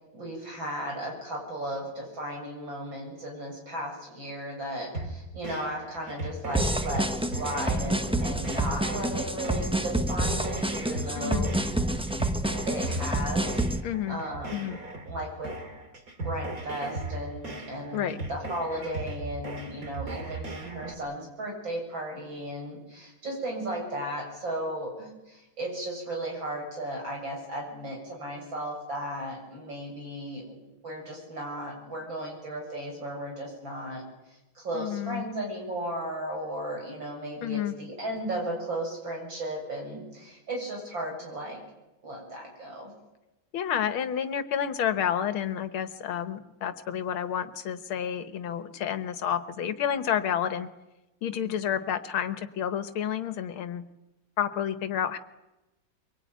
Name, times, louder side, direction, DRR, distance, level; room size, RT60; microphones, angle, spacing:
voice 1, 0.1-11.5 12.7-13.6 14.1-14.7 15.0-15.5 16.2-30.6 30.8-34.0 34.5-41.6 42.0-42.9, right 1 dB, 65° right, 0 dB, 8.3 m, -35 dB
sound 1, 4.9-20.9, right 2 dB, 45° right, 2.9 m, -38 dB
sound 2, 6.5-13.8, right 1 dB, 5° right, 0.4 m, -28 dB
voice 2, 11.2-11.5 13.8-14.2 14.5-14.8 17.9-18.2 34.7-35.2 37.4-37.7 43.5-50.7 51.2-53.8 54.4-55.2, left 9 dB, 85° left, 11 dB, 2.1 m, -30 dB
24.0 x 23.5 x 9.4 m, 1.0 s
omnidirectional pair, 2.2 m